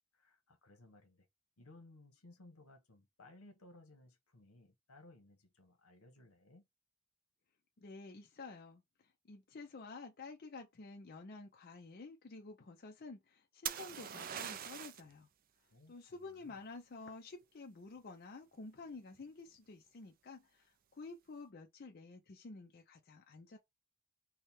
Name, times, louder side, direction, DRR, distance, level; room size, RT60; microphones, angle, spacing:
voice 1, 0.1-1.3 1.6-6.7 15.7-16.6, left 2 dB, 80° left, 1.0 m, -61 dB
voice 2, 7.8-15.3 15.9-23.6, left 3 dB, 45° left, 0.5 m, -51 dB
sound 1, 13.7-15.1 18.8-19.2, right 9 dB, 40° right, 0.3 m, -42 dB
3.4 x 2.1 x 4.2 m
head